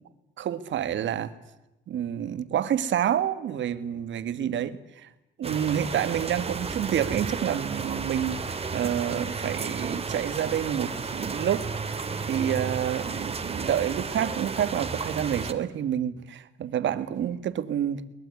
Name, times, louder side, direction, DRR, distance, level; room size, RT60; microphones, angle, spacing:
voice 1, 0.4-1.3 1.9-5.1 5.4-11.7 12.3-18.0, right 10 dB, 70° right, 1.7 m, -28 dB
sound 1, 5.4-15.5, right 4 dB, 30° right, 2.3 m, -33 dB
22.0 x 20.5 x 9.6 m
cardioid pair, 90°, 20 cm